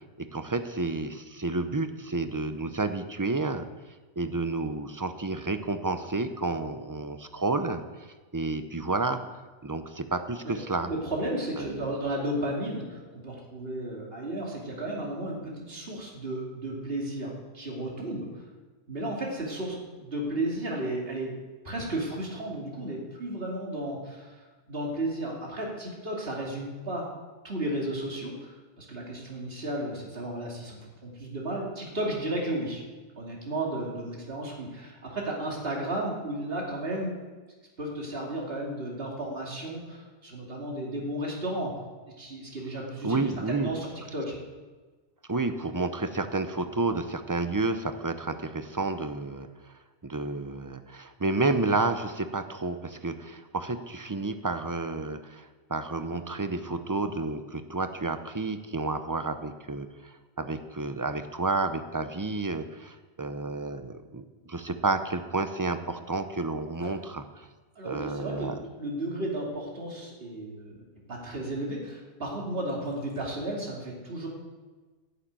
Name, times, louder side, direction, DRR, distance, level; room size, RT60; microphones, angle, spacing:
voice 1, 0.2-3.7 4.2-7.8 8.3-9.2 9.6-10.9 11.6-11.9 43.0-43.7 45.3-49.5 50.0-67.2 67.8-68.5, right 3 dB, 20° right, 9 dB, 0.6 m, -30 dB
voice 2, 10.4-18.4 18.9-21.3 21.6-27.1 27.4-32.8 33.2-37.2 37.8-41.7 42.2-44.4 66.8-66.9 67.8-70.8 71.1-74.3, right 1 dB, 55° right, -2 dB, 2.8 m, -34 dB
11.5 x 7.1 x 9.1 m, 1.3 s
omnidirectional pair, 1.2 m